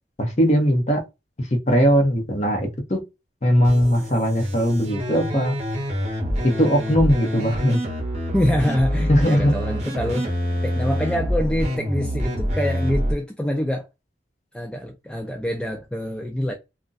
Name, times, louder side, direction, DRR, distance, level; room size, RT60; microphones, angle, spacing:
voice 1, 0.2-1.0 1.4-3.0 3.4-5.5 6.4-7.8 9.1-9.5, equal, 35° left, 0.8 m, -19 dB
sound 1, 3.6-13.1, equal, 35° right, 0.9 m, -26 dB
voice 2, 8.3-10.3 10.6-13.9 14.5-16.5, left 1 dB, 5° left, 0.3 m, -25 dB
2.4 x 2.1 x 3.9 m
head